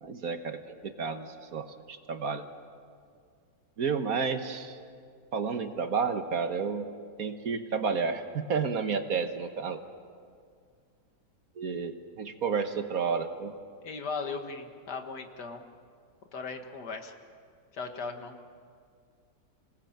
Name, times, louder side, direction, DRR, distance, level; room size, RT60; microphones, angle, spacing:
voice 1, 0.0-2.5 3.8-4.8 5.3-6.9 7.2-9.8 11.6-13.5, right 5 dB, 60° right, 8 dB, 1.6 m, -31 dB
voice 2, 13.8-15.6 16.3-17.1 17.7-18.4, left 4 dB, 70° left, 5 dB, 2.2 m, -37 dB
26.5 x 19.0 x 8.8 m, 2.1 s
omnidirectional pair, 1.8 m